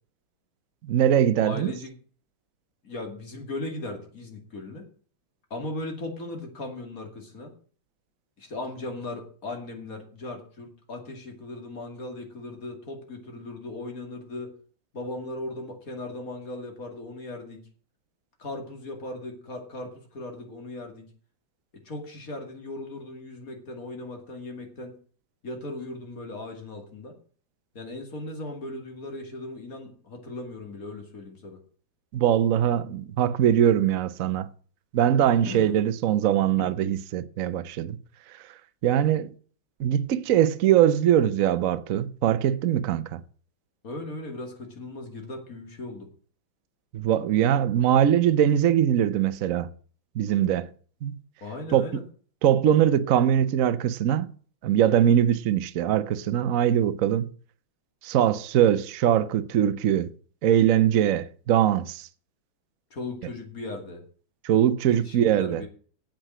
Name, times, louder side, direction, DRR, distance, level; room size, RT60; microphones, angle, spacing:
voice 1, 0.8-1.7 32.1-34.5 34.9-38.0 38.8-39.3 39.8-43.2 46.9-49.7 50.1-50.7 51.0-51.2 51.7-51.8 52.4-54.3 54.6-57.3 58.0-60.1 60.4-62.1 64.4-65.6, right 10 dB, 65° right, 0.8 m, -22 dB
voice 2, 1.4-1.9 2.8-4.8 5.5-7.5 8.4-14.5 14.9-17.6 18.4-21.1 21.8-25.0 25.4-27.1 27.7-31.6 35.2-35.8 36.6-36.7 43.8-46.1 51.4-52.0 62.9-64.0 64.9-65.7, left 2 dB, 45° left, 2.8 m, -37 dB
9.0 x 7.8 x 7.5 m
omnidirectional pair, 2.2 m